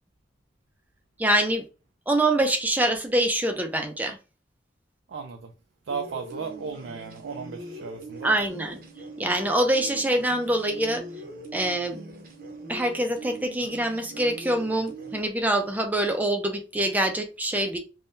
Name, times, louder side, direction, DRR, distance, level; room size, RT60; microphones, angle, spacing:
voice 1, 1.2-1.7 2.1-4.2 8.2-8.8 9.2-11.0 11.5-12.0 12.7-17.8, right 1 dB, 10° right, 0.4 m, -25 dB
voice 2, 5.1-5.5 5.9-8.3, right 5 dB, 85° right, 0.4 m, -35 dB
sound 1, 5.9-15.2, right 1 dB, 55° right, 0.7 m, -41 dB
3.6 x 2.2 x 2.5 m
head